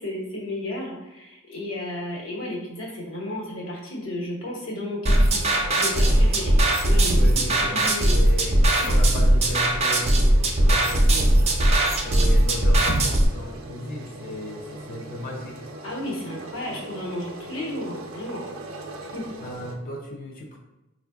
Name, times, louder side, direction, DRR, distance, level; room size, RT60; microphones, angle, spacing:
voice 1, 0.0-6.5 6.8-7.4 7.7-8.1 8.8-9.0 15.8-18.4 19.1-19.2, left 1 dB, 80° left, -4 dB, 1.1 m, -33 dB
sound 1, 5.1-13.3, right 1 dB, 30° right, 0.5 m, -19 dB
sound 2, 5.3-19.8, right 1 dB, 85° right, 0.5 m, -40 dB
voice 2, 7.1-7.8 8.1-8.6 8.8-11.3 12.0-15.6 19.4-20.6, left 1 dB, 45° left, 0 dB, 0.4 m, -35 dB
4.3 x 2.4 x 2.2 m, 0.96 s
head